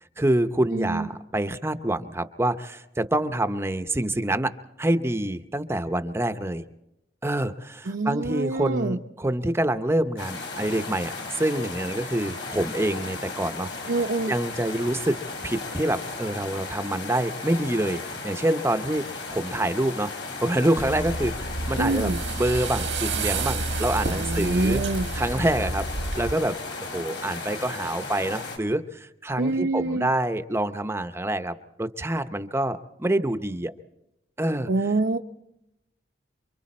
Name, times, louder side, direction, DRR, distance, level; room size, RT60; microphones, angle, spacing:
voice 1, 0.2-4.5 4.8-6.6 7.2-11.1 11.4-13.7 14.3-15.2 15.4-20.1 20.4-24.8 25.1-26.6 26.9-33.7 34.4-34.7, right 1 dB, 15° right, 0.7 m, -26 dB
voice 2, 0.7-1.1 7.9-9.0 13.9-14.3 21.8-22.2 24.0-25.1 29.4-30.1 34.7-35.2, right 2 dB, 70° right, 0.7 m, -26 dB
sound 1, 10.2-28.6, left 3 dB, 70° left, 4.9 m, -36 dB
sound 2, 20.8-26.3, right 3 dB, 85° right, 1.3 m, -30 dB
28.0 x 24.0 x 4.2 m
head